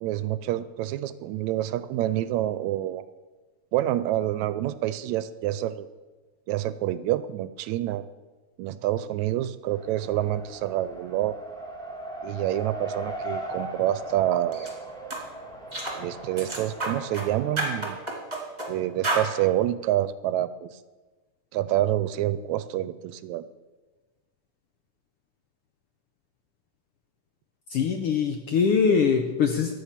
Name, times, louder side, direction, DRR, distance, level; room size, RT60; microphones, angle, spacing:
voice 1, 0.0-3.0 3.7-5.9 6.5-8.0 8.6-11.4 12.2-14.7 16.0-18.0 18.7-20.8 21.5-23.5, right 13 dB, 80° right, 15 dB, 1.8 m, -27 dB
Race car auto racing, 9.7-17.8, right 1 dB, ahead, 1.2 m, -39 dB
sound 1, 14.5-14.7 15.1-15.2 15.7-16.0 16.4-17.3 17.6-18.7 19.0-19.3, right 2 dB, 15° right, 2.1 m, -30 dB
voice 2, 27.7-29.7, left 6 dB, 70° left, 6 dB, 1.4 m, -23 dB
13.5 x 8.8 x 7.3 m, 1.3 s
omnidirectional pair, 3.4 m